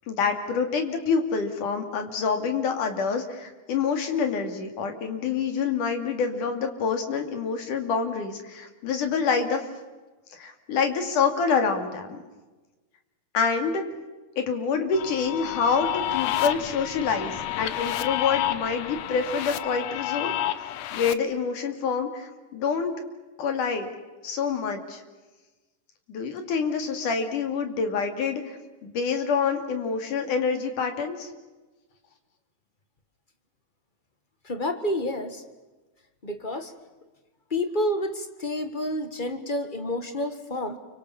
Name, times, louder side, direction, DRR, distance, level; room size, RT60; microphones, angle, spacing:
voice 1, 0.1-9.6 10.3-12.2 13.3-13.8 14.4-20.3 20.9-23.0 23.4-23.9 24.2-25.0 26.1-31.3, left 5 dB, 85° left, 6 dB, 4.2 m, -27 dB
sound 1, 14.9-21.1, left 14 dB, 65° left, 2.0 m, -30 dB
voice 2, 34.4-35.4 36.2-36.7 37.5-40.8, left 1 dB, 30° left, 8 dB, 0.9 m, -29 dB
29.5 x 24.5 x 7.1 m, 1.2 s
omnidirectional pair, 3.5 m